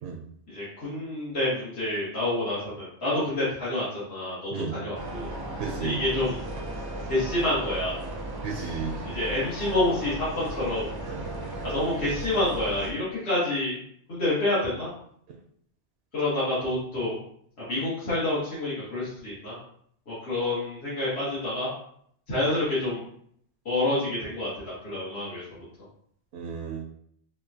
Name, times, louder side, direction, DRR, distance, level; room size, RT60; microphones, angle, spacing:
voice 1, 0.5-5.3 5.8-6.4 7.1-8.0 9.0-10.9 11.6-13.8 14.1-14.9 16.1-17.2 17.6-19.6 20.1-21.7 22.3-23.0 23.6-24.5 24.8-25.4, left 1 dB, 75° left, -11 dB, 1.6 m, -28 dB
sound 1, 4.9-12.9, right 1 dB, 30° right, 0.4 m, -35 dB
voice 2, 5.6-6.0 8.4-9.1 11.1-11.3 26.3-26.8, right 5 dB, 70° right, 1 dB, 0.8 m, -33 dB
5.4 x 2.2 x 2.7 m, 0.67 s
omnidirectional pair, 1.1 m